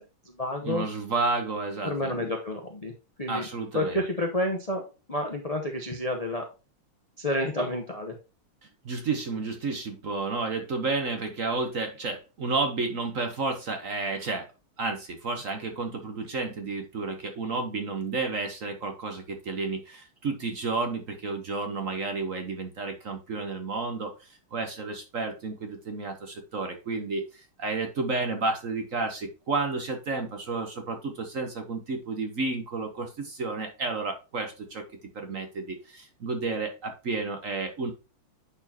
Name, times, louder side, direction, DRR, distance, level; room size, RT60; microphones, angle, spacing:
voice 1, 0.0-0.9 1.8-2.9 3.2-3.5 3.7-6.5 7.2-8.2, left 1 dB, 35° left, 2 dB, 0.6 m, -30 dB
voice 2, 0.6-2.3 3.3-4.0 8.8-14.5 14.8-34.8 35.1-37.9, right 3 dB, 50° right, 5 dB, 1.1 m, -31 dB
9.7 x 4.4 x 2.8 m, 0.31 s
omnidirectional pair, 2.3 m